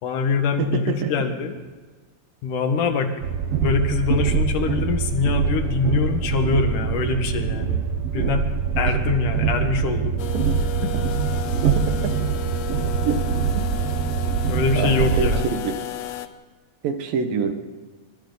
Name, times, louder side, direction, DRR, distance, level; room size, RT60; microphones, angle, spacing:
voice 1, 0.0-1.5 2.4-3.1 3.6-7.9 8.1-8.5 8.8-10.2 10.8-10.9 14.4-15.5, left 5 dB, 65° left, 6 dB, 3.0 m, -24 dB
voice 2, 0.6-1.1 13.0-13.1 14.8-14.9 15.2-15.3 15.6-15.7 16.8-17.5, right 6 dB, 75° right, 7 dB, 3.1 m, -24 dB
Train, 3.2-15.4, right 6 dB, 90° right, 1.3 m, -24 dB
sound 1, 10.2-16.3, left 10 dB, 85° left, 1.5 m, -33 dB
27.5 x 23.5 x 4.0 m, 1.3 s
omnidirectional pair, 4.2 m